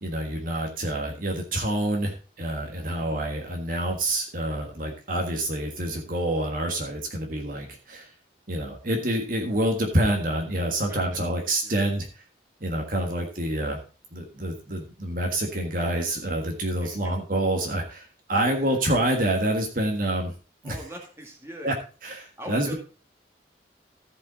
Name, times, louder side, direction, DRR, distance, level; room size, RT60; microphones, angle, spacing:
voice 1, 0.0-8.1 8.5-12.1 12.6-13.8 14.1-20.3 20.6-20.8 21.6-21.7 22.0-22.7, right 1 dB, 50° right, 2 dB, 1.6 m, -27 dB
voice 2, 2.7-3.1 10.9-11.2 11.6-11.9 16.8-17.1 18.3-18.8 20.6-21.7 22.4-22.7, equal, 15° right, 1 dB, 2.0 m, -42 dB
14.5 x 5.5 x 4.0 m, 0.35 s
head